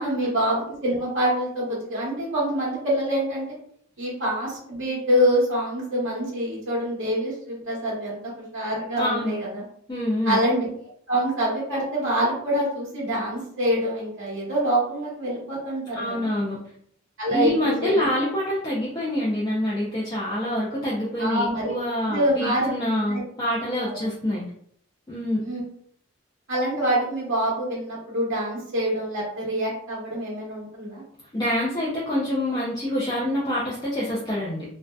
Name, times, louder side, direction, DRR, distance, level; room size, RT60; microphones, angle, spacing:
voice 1, 0.0-3.5 4.0-9.6 10.2-10.7 11.1-16.3 17.2-18.1 21.2-21.6 22.1-22.7 23.1-23.2 23.8-24.1 25.4-25.6 26.5-31.0, equal, 65° right, -7 dB, 0.9 m, -25 dB
voice 2, 9.0-9.4 9.9-10.4 15.9-16.6 17.3-24.4 25.1-25.4 31.3-34.6, left 1 dB, 20° left, -6 dB, 0.4 m, -26 dB
2.5 x 2.2 x 2.2 m, 0.63 s
head